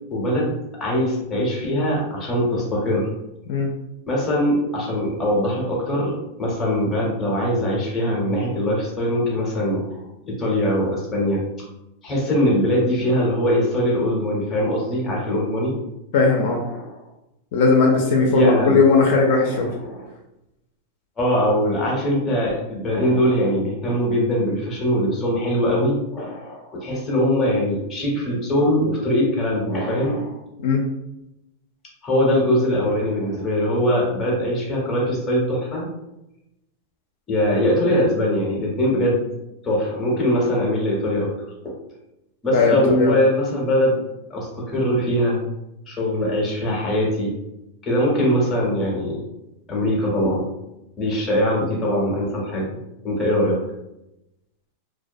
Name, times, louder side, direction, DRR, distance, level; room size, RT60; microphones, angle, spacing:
voice 1, 0.1-3.1 4.1-11.4 12.0-15.7 16.7-16.9 18.2-18.8 19.5-20.1 21.2-30.3 32.0-35.9 37.3-39.2 39.6-41.3 41.6-41.8 42.4-44.0 44.3-45.4 45.9-47.3 47.8-49.2 49.7-50.5 51.0-52.8 53.0-53.6, equal, 15° left, -3 dB, 0.7 m, -22 dB
voice 2, 16.1-16.6 17.5-19.7 30.6-30.8 42.5-43.2, left 4 dB, 55° left, 0 dB, 0.4 m, -18 dB
2.2 x 2.1 x 2.6 m, 0.90 s
supercardioid pair, 165°, 0 cm